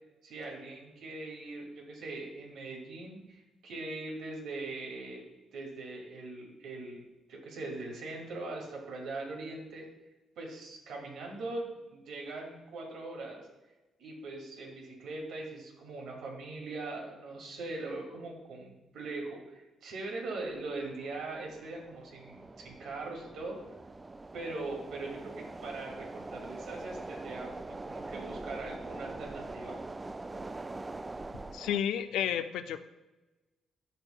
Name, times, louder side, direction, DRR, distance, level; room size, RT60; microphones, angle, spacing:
voice 1, 0.2-5.2 5.5-7.0 7.3-9.8 10.4-13.4 14.0-23.6 24.3-29.8, right 2 dB, 80° right, 0 dB, 2.2 m, -41 dB
sound 1, 20.3-31.8, right 2 dB, 20° right, 0.3 m, -44 dB
voice 2, 31.5-32.8, left 9 dB, 85° left, 11 dB, 0.4 m, -31 dB
13.0 x 4.5 x 2.3 m, 1.1 s
cardioid pair, 90°, 0 cm